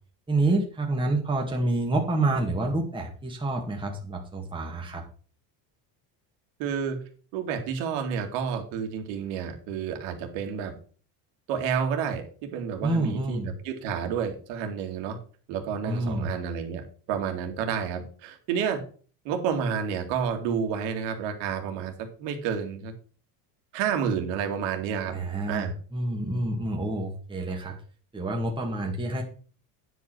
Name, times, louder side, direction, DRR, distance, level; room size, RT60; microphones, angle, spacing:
voice 1, 0.3-5.0 12.8-13.5 15.8-16.3 25.1-27.8 28.1-29.2, right 2 dB, 10° right, 0 dB, 1.9 m, -28 dB
voice 2, 6.6-7.0 7.3-10.7 11.5-13.4 13.6-15.2 15.5-18.8 19.2-22.9 23.7-25.1 25.5-25.7, right 7 dB, 85° right, 4 dB, 2.5 m, -30 dB
9.6 x 5.5 x 6.1 m, 0.41 s
cardioid pair, 125°, 45 cm